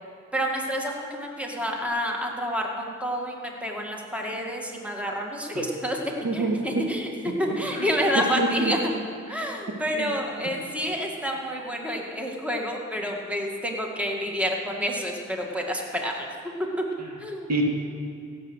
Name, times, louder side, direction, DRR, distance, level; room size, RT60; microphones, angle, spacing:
voice 1, 0.3-6.0 6.3-8.9 9.3-16.3 17.2-17.5, equal, 5° right, 0 dB, 2.0 m, -29 dB
voice 2, 6.2-6.6 7.5-7.9 8.4-8.7 9.9-10.1 17.0-17.1 17.5-17.6, right 3 dB, 60° right, 0 dB, 2.0 m, -27 dB
16.0 x 7.6 x 6.3 m, 2.6 s
cardioid pair, 60°, 30 cm